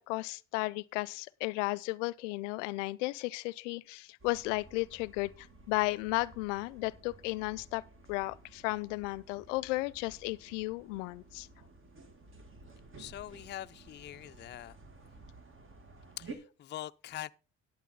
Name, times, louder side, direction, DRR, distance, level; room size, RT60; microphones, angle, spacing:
voice 1, 0.0-7.8 8.1-11.5, left 22 dB, 85° left, 0.5 m, -34 dB
sound 1, 4.2-16.4, right 3 dB, 35° right, 1.8 m, -54 dB
voice 2, 13.0-14.8 16.2-17.3, left 13 dB, 30° left, 0.4 m, -43 dB
11.0 x 8.6 x 3.9 m
hypercardioid pair, 65°, 36 cm